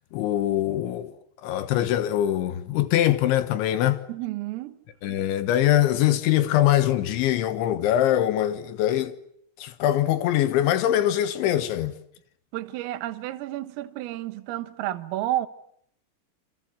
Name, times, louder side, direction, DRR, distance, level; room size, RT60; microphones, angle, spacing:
voice 1, 0.1-1.1 1.4-4.0 5.0-9.1 9.6-11.9, left 12 dB, 70° left, 3.4 m, -23 dB
voice 2, 4.1-4.8 12.5-15.5, right 14 dB, 80° right, 3.9 m, -31 dB
27.5 x 26.5 x 7.5 m
omnidirectional pair, 6.0 m